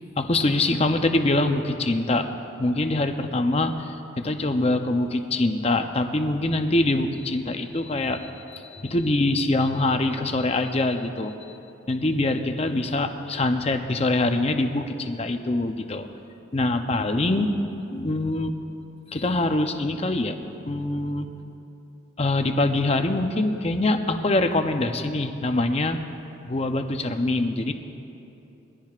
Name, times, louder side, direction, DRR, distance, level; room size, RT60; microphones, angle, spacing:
voice 1, 0.2-2.2 2.6-11.3 11.9-16.1 16.5-18.5 19.1-20.4 20.6-21.3 22.2-26.0 26.4-27.7, left 2 dB, 30° left, 6 dB, 0.6 m, -24 dB
22.0 x 15.0 x 2.5 m, 2.9 s
head